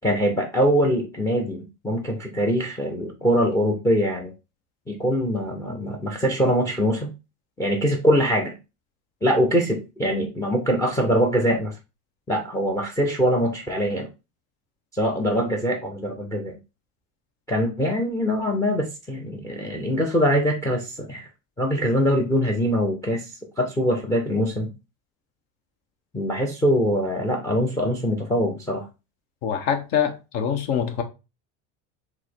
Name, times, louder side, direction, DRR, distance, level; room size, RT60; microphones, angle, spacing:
voice 1, 0.0-4.3 4.9-7.1 7.6-8.5 9.2-11.7 12.3-14.1 14.9-16.6 17.5-21.3 21.6-24.7 26.1-28.9, equal, 10° left, 0.4 m, -23 dB
voice 2, 29.4-31.0, left 8 dB, 75° left, 0.9 m, -24 dB
4.7 x 2.1 x 4.2 m
cardioid pair, 155°, 33 cm